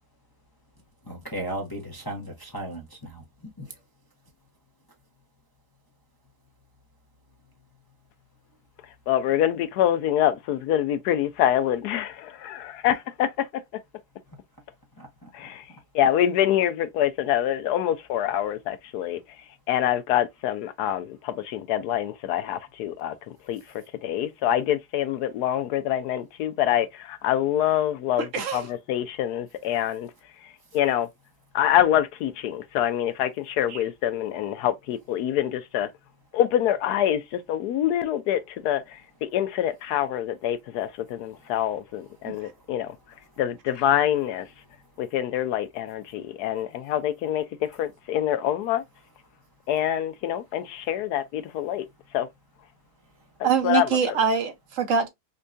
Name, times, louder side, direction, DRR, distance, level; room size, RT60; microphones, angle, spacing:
voice 1, 1.0-3.8 15.0-15.3 41.3-41.5 42.3-42.4, right 1 dB, 25° left, 0.5 m, -36 dB
voice 2, 9.1-13.5 15.3-15.6 15.9-19.2 19.7-23.1 23.5-23.6 24.0-30.1 30.7-31.1 31.5-35.9 36.3-39.0 39.3-42.9 43.4-44.5 45.0-48.8 49.7-51.8 52.1-52.3 53.6-54.2, left 11 dB, 80° left, 1.1 m, -25 dB
voice 3, 28.2-28.7 33.7-33.8 42.3-42.4 53.4-55.1, right 6 dB, 55° right, 1.2 m, -24 dB
5.3 x 2.2 x 2.5 m
omnidirectional pair, 1.7 m